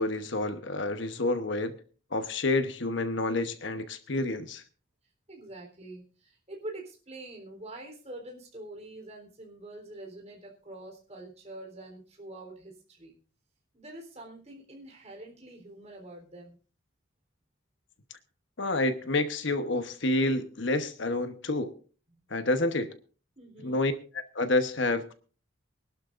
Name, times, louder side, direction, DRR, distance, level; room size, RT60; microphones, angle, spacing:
voice 1, 0.0-1.7 2.1-4.6 18.6-21.7 22.3-22.9 23.6-23.9 24.3-25.1, left 2 dB, 65° left, 9 dB, 1.1 m, -28 dB
voice 2, 5.3-13.1 13.7-16.6 22.1-22.2 23.4-23.8, right 1 dB, 35° right, 1 dB, 3.8 m, -45 dB
24.0 x 12.0 x 2.6 m, 0.38 s
head